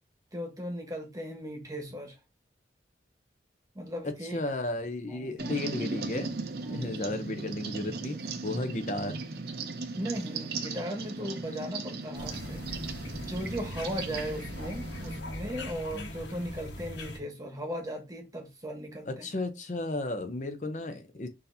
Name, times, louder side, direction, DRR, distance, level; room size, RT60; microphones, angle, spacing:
voice 1, 0.3-2.2 3.7-4.4 5.1-5.5 6.6-6.9 8.6-8.8 10.0-12.7 13.1-19.2, equal, 20° right, 1.1 m, -37 dB
voice 2, 4.2-6.4 6.7-9.2 14.1-14.2 15.9-16.1 19.1-21.3, left 2 dB, 40° left, 0.6 m, -34 dB
sound 1, 5.4-15.2, right 3 dB, 60° right, 0.7 m, -37 dB
sound 2, 12.1-17.2, left 1 dB, 85° left, 1.3 m, -40 dB
6.3 x 2.7 x 2.7 m
head